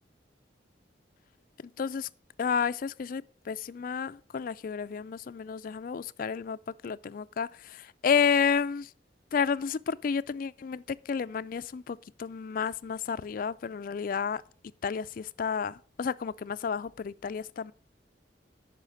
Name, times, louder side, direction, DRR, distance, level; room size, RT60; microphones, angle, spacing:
voice 1, 1.8-2.1 2.4-6.6 6.8-8.9 9.3-14.4 14.8-17.7, left 6 dB, 50° left, 0.3 m, -31 dB
10.5 x 5.0 x 5.3 m
head